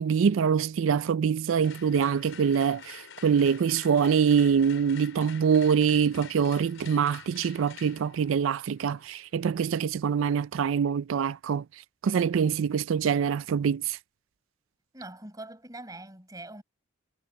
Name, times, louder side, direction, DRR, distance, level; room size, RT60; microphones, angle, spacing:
voice 1, 0.0-11.6 12.0-14.0, right 7 dB, 70° right, 0.4 m, -24 dB
sound 1, 1.6-9.6, left 8 dB, 70° left, 4.7 m, -48 dB
voice 2, 14.9-16.6, right 2 dB, 15° right, 7.7 m, -43 dB
head